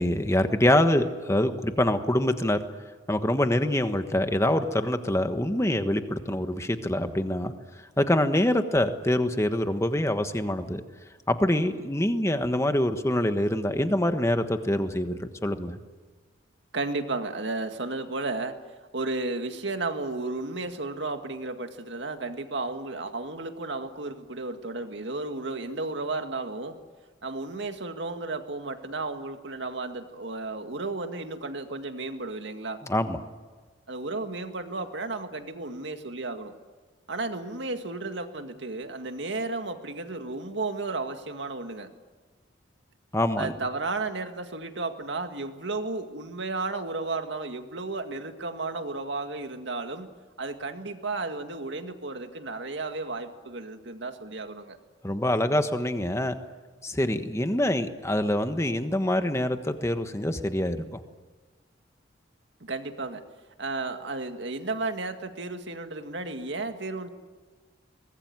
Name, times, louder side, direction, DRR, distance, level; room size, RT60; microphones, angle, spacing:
voice 1, 0.0-2.6 3.1-7.5 8.0-10.8 11.3-15.8 32.9-33.2 43.1-43.5 55.0-56.3 56.8-61.0, left 1 dB, 15° left, 8 dB, 1.3 m, -25 dB
voice 2, 16.7-18.6 18.9-26.8 27.2-32.8 33.9-36.5 37.1-41.9 43.4-50.1 50.4-54.8 62.6-63.2 63.6-67.1, right 3 dB, 65° right, 6 dB, 2.0 m, -33 dB
23.5 x 20.0 x 9.6 m, 1.4 s
head